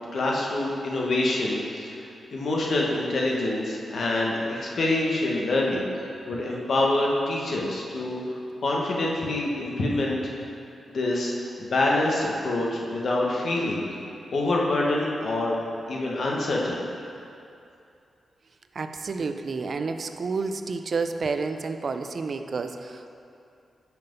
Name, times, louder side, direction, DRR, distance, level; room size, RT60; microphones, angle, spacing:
voice 1, 0.1-10.4 10.9-13.8 14.3-15.6 15.9-16.8, left 2 dB, 50° left, -3 dB, 1.0 m, -26 dB
voice 2, 6.1-6.5 18.7-23.1, right 4 dB, 40° right, 8 dB, 0.3 m, -30 dB
5.8 x 5.6 x 5.2 m, 2.6 s
wide cardioid pair, 170°, 0 cm